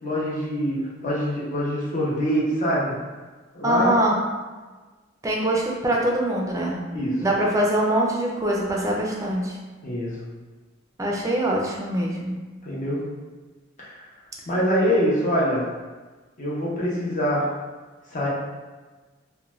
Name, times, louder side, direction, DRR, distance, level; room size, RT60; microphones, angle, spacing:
voice 1, 0.0-3.0 3.5-4.0 6.9-7.2 9.8-10.2 12.6-13.0 13.8-14.0 14.5-15.6 16.4-17.5 18.1-18.3, equal, 40° left, -6 dB, 0.7 m, -24 dB
voice 2, 3.6-4.2 5.2-6.8 7.2-9.6 11.0-12.4, right 1 dB, 15° right, -2 dB, 0.4 m, -23 dB
2.4 x 2.2 x 3.0 m, 1.3 s
head